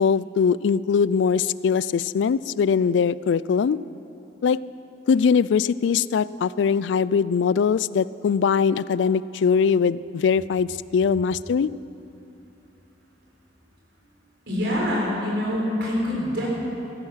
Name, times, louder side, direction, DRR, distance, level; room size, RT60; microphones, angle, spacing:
voice 1, 0.0-3.8 4.4-4.6 5.1-11.7, left 6 dB, 85° left, 19 dB, 0.3 m, -21 dB
voice 2, 14.5-16.5, left 1 dB, 75° right, -3 dB, 4.2 m, -25 dB
14.5 x 13.5 x 5.8 m, 2.8 s
head